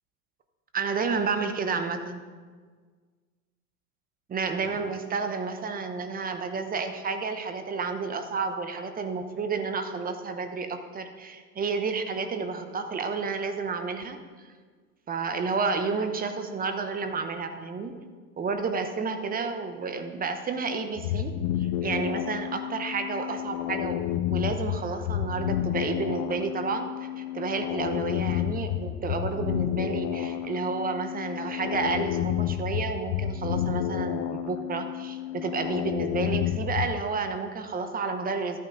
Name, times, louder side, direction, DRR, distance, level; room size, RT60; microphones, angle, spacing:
voice 1, 0.7-2.2 4.3-14.2 15.1-18.0 18.4-21.3 21.6-24.0 24.3-26.9 27.2-38.6, right 4 dB, 20° right, 7 dB, 0.9 m, -31 dB
sound 1, 21.0-37.0, left 11 dB, 35° left, 0.5 m, -30 dB
13.5 x 9.3 x 3.9 m, 1.5 s
hypercardioid pair, 105°, 48 cm